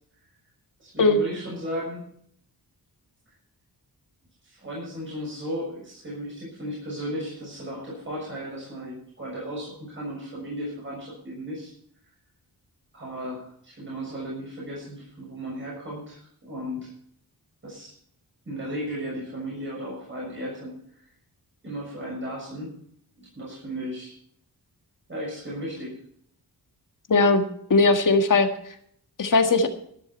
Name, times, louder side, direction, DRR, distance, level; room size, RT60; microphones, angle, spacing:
voice 1, 0.8-2.0 4.4-11.7 12.9-16.9 17.6-17.9 18.4-20.7 21.6-22.7 23.2-24.1 25.1-26.0, equal, 30° right, -4 dB, 6.6 m, -35 dB
voice 2, 27.1-28.5 29.2-29.7, left 3 dB, 55° left, 6 dB, 1.8 m, -19 dB
14.0 x 12.0 x 4.4 m, 0.66 s
wide cardioid pair, 170°, 38 cm